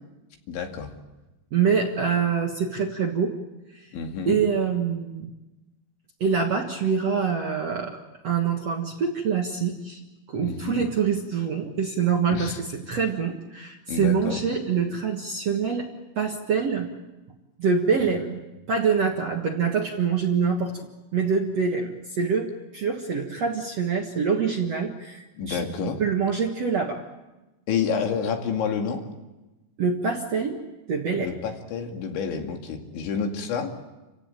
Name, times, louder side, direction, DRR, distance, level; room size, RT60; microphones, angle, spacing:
voice 1, 0.5-0.9 3.9-4.4 10.4-10.9 12.3-12.6 13.9-14.4 18.0-18.1 25.4-26.0 27.7-29.0 31.2-33.7, left 6 dB, 85° left, 3 dB, 4.6 m, -29 dB
voice 2, 1.5-3.3 3.7-3.9 4.2-5.3 6.2-8.0 8.2-10.0 10.3-15.9 16.1-16.9 17.6-18.4 18.7-20.8 21.1-27.0 29.8-30.6 30.9-31.3, right 6 dB, 60° right, 2 dB, 1.8 m, -25 dB
29.0 x 16.0 x 9.0 m, 1.1 s
omnidirectional pair, 5.1 m